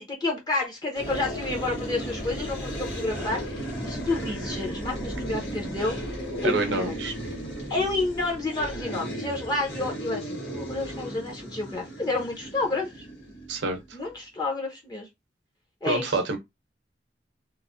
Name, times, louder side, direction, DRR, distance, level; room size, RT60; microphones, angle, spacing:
voice 1, 0.0-6.0 6.4-6.9 7.7-13.0 13.9-15.1 15.8-16.2, left 2 dB, 25° left, 0.7 m, -30 dB
sound 1, 0.9-13.9, equal, 90° left, 1.3 m, -35 dB
voice 2, 6.4-7.1 13.5-13.8 15.9-16.4, right 3 dB, 80° right, 0.7 m, -27 dB
3.0 x 2.1 x 2.5 m
head